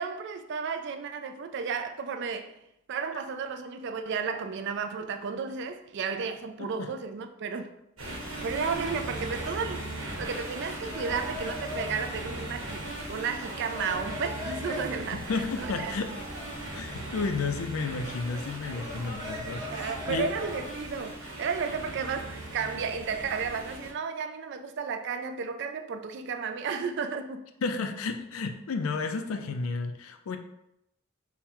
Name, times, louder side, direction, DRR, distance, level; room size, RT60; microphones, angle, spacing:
voice 1, 0.0-2.6 2.9-7.7 8.4-15.2 15.6-15.9 19.5-27.4, right 5 dB, 55° right, 0.3 m, -33 dB
voice 2, 6.6-6.9 15.1-16.1 16.7-20.3 27.6-30.4, left 4 dB, 85° left, 0.4 m, -32 dB
sound 1, 8.0-23.9, right 1 dB, 75° right, 1.2 m, -38 dB
sound 2, 10.9-20.6, left 1 dB, 20° right, 0.8 m, -42 dB
3.6 x 2.1 x 4.4 m
head